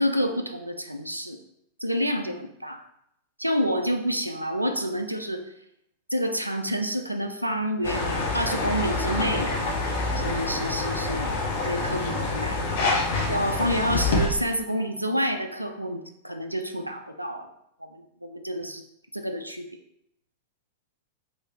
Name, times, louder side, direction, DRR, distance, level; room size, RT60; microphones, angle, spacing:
voice 1, 0.0-1.4 1.8-2.8 3.4-5.4 6.1-9.5 10.1-11.3 11.7-12.6 13.3-17.5 17.8-18.8 19.1-19.7, equal, 90° right, 6 dB, 0.3 m, -28 dB
sound 1, 7.8-14.3, left 3 dB, 55° left, 0.8 m, -26 dB
3.3 x 3.2 x 4.0 m, 0.77 s
figure-of-eight pair, 90°, 0 cm